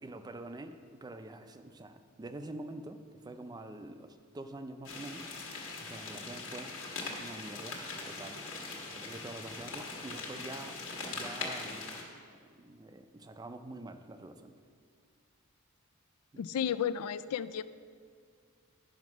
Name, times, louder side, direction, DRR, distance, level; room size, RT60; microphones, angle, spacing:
voice 1, 0.0-5.3 5.8-6.7 7.2-8.5 8.9-10.8 11.1-14.5 16.3-16.4, right 2 dB, 20° right, 8 dB, 0.4 m, -46 dB
sound 1, 4.8-12.0, left 3 dB, 65° left, 1.5 m, -41 dB
voice 2, 16.4-17.6, left 8 dB, 80° left, 14 dB, 0.3 m, -33 dB
9.4 x 5.2 x 6.1 m, 2.1 s
head